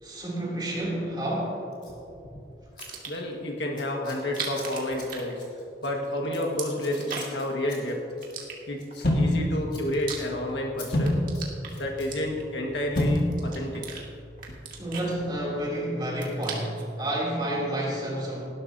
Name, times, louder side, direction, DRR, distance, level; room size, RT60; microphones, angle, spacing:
voice 1, 0.0-1.7 14.8-18.4, right 1 dB, 25° right, -5 dB, 3.1 m, -30 dB
Scissors, 1.7-2.0 2.8-2.9 3.1-3.4 3.7-9.4 9.7-9.9 10.2-10.3 10.8-10.9 11.2-12.1 12.9-13.1, left 3 dB, 25° left, 2.8 m, -48 dB
sound 1, 2.7-3.3 4.2-5.8 6.1-7.5 8.2-9.0 9.6-10.7 11.0-12.6 13.1-14.0 14.4-15.7 16.0-16.9, right 6 dB, 50° right, 2.0 m, -39 dB
voice 2, 3.1-5.4 5.8-8.0 8.7-11.2 11.8-13.8, left 1 dB, 75° left, 1 dB, 1.8 m, -30 dB
sound 2, 9.0-15.1, left 1 dB, 55° left, 1.8 m, -29 dB
19.0 x 11.5 x 2.9 m, 2.7 s
head